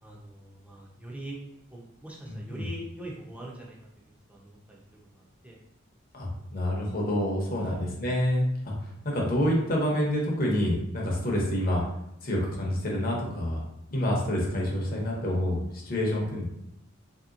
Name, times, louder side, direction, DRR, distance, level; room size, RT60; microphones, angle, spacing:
voice 1, 0.0-1.4 1.7-3.8 4.0-4.8 5.1-5.6 6.3-6.5 7.6-7.9, right 1 dB, 5° right, -3 dB, 0.6 m, -43 dB
voice 2, 2.3-2.6 6.1-8.5 8.8-11.8 12.2-13.6 13.9-16.5, equal, 45° left, -2 dB, 0.8 m, -27 dB
3.2 x 2.8 x 2.5 m, 0.81 s
head